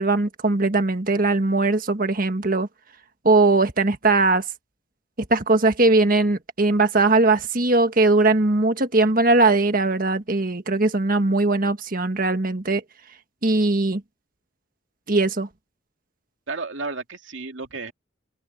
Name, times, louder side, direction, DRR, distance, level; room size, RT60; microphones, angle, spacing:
voice 1, 0.0-2.7 3.2-4.5 5.3-12.8 13.4-14.0 15.1-15.5, right 3 dB, 45° right, 1.6 m, -20 dB
voice 2, 16.5-17.9, right 3 dB, 70° right, 2.4 m, -32 dB
head